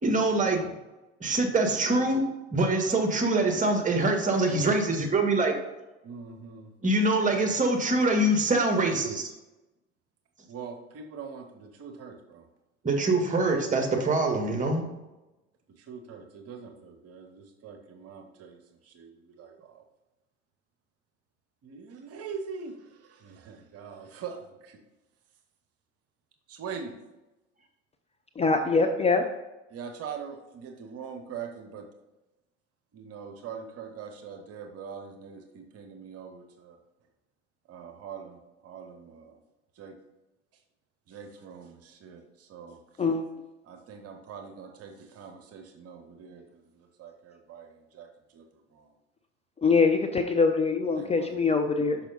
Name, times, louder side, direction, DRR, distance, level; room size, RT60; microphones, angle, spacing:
voice 1, 0.0-0.7 1.2-5.5 6.8-9.3 12.8-14.8, right 2 dB, 20° right, 4 dB, 1.6 m, -24 dB
voice 2, 6.0-6.7 10.5-12.5 15.7-19.8 21.6-24.8 26.5-27.0 29.7-31.9 32.9-36.8 37.7-39.4 39.7-40.0 40.5-40.6 41.1-43.0 43.6-48.9 50.9-51.4, right 6 dB, 45° right, 5 dB, 1.0 m, -43 dB
voice 3, 28.4-29.2 43.0-43.2 49.6-52.0, left 4 dB, 20° left, 5 dB, 0.6 m, -23 dB
6.1 x 5.7 x 4.0 m, 1.0 s
hypercardioid pair, 70°, 34 cm